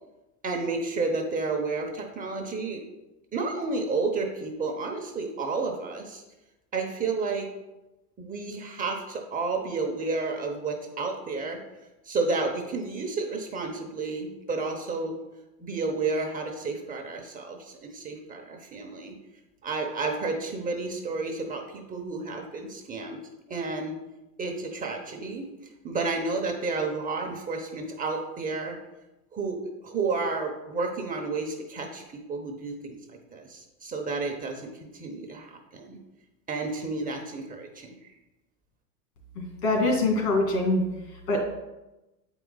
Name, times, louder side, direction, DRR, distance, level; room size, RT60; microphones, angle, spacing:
voice 1, 0.4-2.8 3.3-6.2 6.7-7.5 8.2-11.6 12.0-15.2 15.6-19.2 19.6-23.2 23.5-24.0 24.4-28.8 29.3-33.0 33.3-36.0 36.5-38.0, right 3 dB, 20° right, 2 dB, 0.9 m, -31 dB
voice 2, 39.4-40.8 41.3-41.4, left 2 dB, 75° left, 1 dB, 2.5 m, -24 dB
7.7 x 4.9 x 4.0 m, 1.0 s
hypercardioid pair, 115°, 47 cm